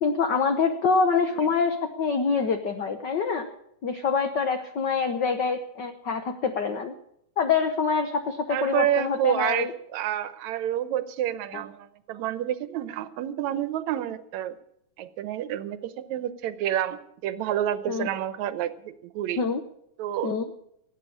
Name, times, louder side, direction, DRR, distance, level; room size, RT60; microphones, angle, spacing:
voice 1, 0.0-3.5 3.8-6.9 7.4-9.7 11.5-11.6 17.9-18.1 19.4-19.6 20.2-20.4, left 5 dB, 65° left, 7 dB, 1.0 m, -25 dB
voice 2, 8.5-14.6 15.0-19.4 20.0-20.3, right 11 dB, 80° right, 14 dB, 2.2 m, -29 dB
17.0 x 9.1 x 8.5 m, 0.74 s
omnidirectional pair, 3.4 m